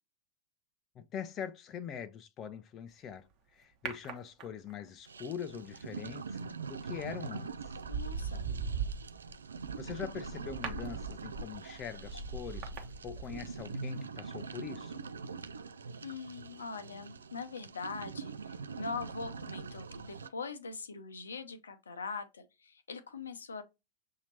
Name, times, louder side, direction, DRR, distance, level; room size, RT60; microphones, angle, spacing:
voice 1, 1.0-6.4 6.7-7.8 9.8-12.7 13.0-15.0, left 8 dB, 30° left, 0.4 m, -43 dB
sound 1, 3.9-4.9 6.8-7.0 7.5-13.7 14.0-14.1, right 5 dB, 40° right, 1.0 m, -40 dB
sound 2, 5.1-20.3, right 4 dB, 70° right, 0.3 m, -44 dB
voice 2, 7.9-8.5 16.0-23.6, left 4 dB, 70° left, 0.7 m, -42 dB
6.6 x 2.8 x 2.8 m
figure-of-eight pair, 90°, 0 cm